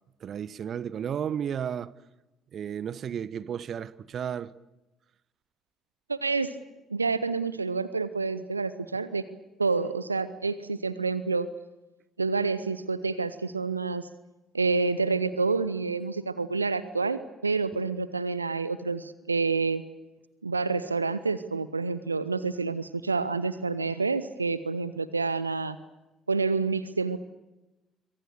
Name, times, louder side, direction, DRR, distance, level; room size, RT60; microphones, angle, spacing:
voice 1, 0.2-1.9 2.5-4.5, right 8 dB, 45° right, 1.0 m, -33 dB
voice 2, 6.1-6.6 6.9-9.2 9.6-11.5 12.2-14.1 14.5-19.8 20.4-25.8 26.3-27.2, right 4 dB, 85° right, 0.8 m, -28 dB
27.0 x 24.0 x 6.6 m
figure-of-eight pair, 50°, 0 cm